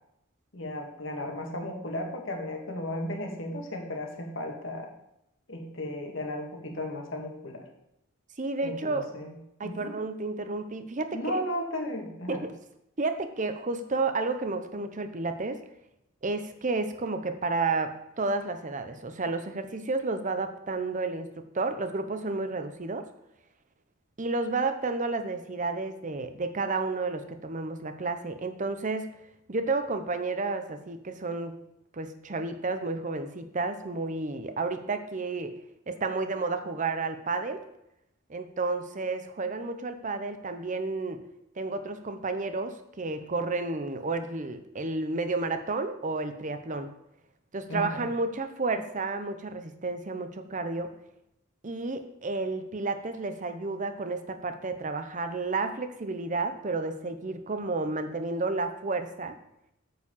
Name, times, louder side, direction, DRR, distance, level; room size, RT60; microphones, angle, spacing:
voice 1, 0.5-4.9 5.5-7.7 8.6-9.4 9.6-10.0 11.1-12.5 47.7-48.1, left 1 dB, 65° left, 2 dB, 1.9 m, -35 dB
voice 2, 8.4-9.1 9.6-11.2 12.3-12.5 13.0-15.6 16.2-21.3 21.5-23.0 24.2-29.1 29.5-31.5 31.9-35.5 35.9-37.6 38.3-41.2 41.6-46.9 47.5-50.9 51.6-59.4, right 3 dB, 40° right, 8 dB, 0.8 m, -31 dB
9.3 x 4.6 x 7.1 m, 0.82 s
head